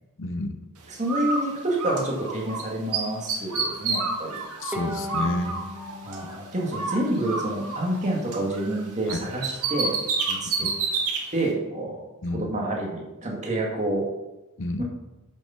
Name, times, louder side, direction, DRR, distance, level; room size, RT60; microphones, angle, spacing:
voice 1, 0.2-0.6 4.6-5.6 9.1-9.3 12.2-12.5 14.6-14.8, left 2 dB, 60° left, 8 dB, 0.8 m, -29 dB
voice 2, 0.9-4.4 6.0-9.9 10.3-10.7 11.3-12.0 12.3-14.1 14.8-14.9, right 1 dB, 35° right, -1 dB, 2.0 m, -28 dB
Bird, 1.1-2.6 2.9-6.4 6.7-8.8 9.1-11.2, right 4 dB, 80° right, 1.8 m, -29 dB
Bowed string instrument, 4.7-8.0, left 1 dB, 5° right, 1.5 m, -38 dB
7.6 x 6.8 x 5.7 m, 1.0 s
head